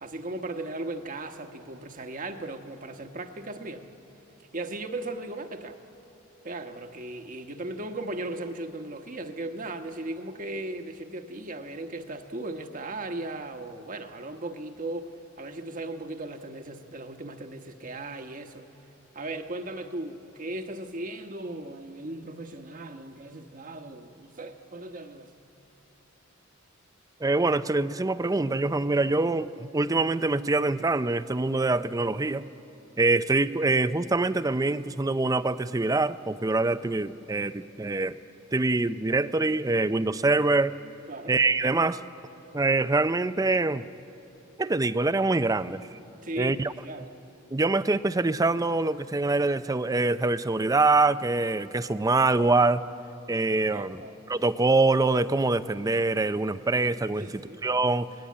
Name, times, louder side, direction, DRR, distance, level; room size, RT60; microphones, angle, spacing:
voice 1, 0.0-3.9 4.5-5.8 6.4-18.7 19.1-25.3 41.1-41.4 46.2-47.1 53.7-54.2 57.2-57.6, right 2 dB, 40° right, 6 dB, 1.2 m, -37 dB
voice 2, 27.2-32.5 33.0-38.2 38.5-40.8 41.3-42.0 42.5-43.9 44.6-45.8 46.4-46.7 47.5-52.8 53.3-54.0 54.3-58.1, right 3 dB, 15° right, 14 dB, 0.5 m, -24 dB
28.5 x 19.0 x 8.5 m, 2.9 s
head